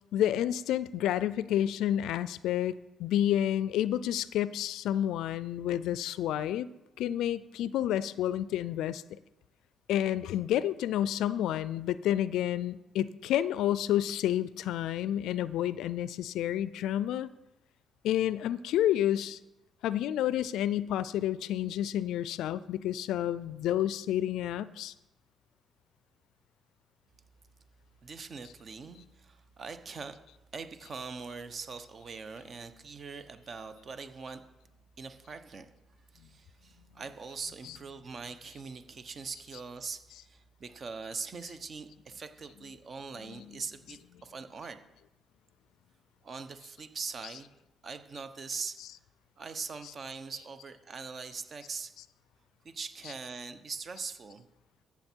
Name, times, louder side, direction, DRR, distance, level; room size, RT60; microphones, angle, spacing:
voice 1, 0.1-6.7 7.0-9.0 9.9-17.3 18.0-19.4 19.8-24.9 37.6-37.7 43.3-43.5, left 11 dB, 85° left, 17 dB, 0.3 m, -30 dB
voice 2, 28.0-30.2 30.5-34.4 35.0-35.7 36.1-44.8 46.2-47.5 47.8-48.8 49.4-51.9 52.6-54.5, right 5 dB, 45° right, 10 dB, 0.9 m, -42 dB
14.0 x 7.2 x 4.5 m, 0.96 s
cardioid pair, 90°, 0 cm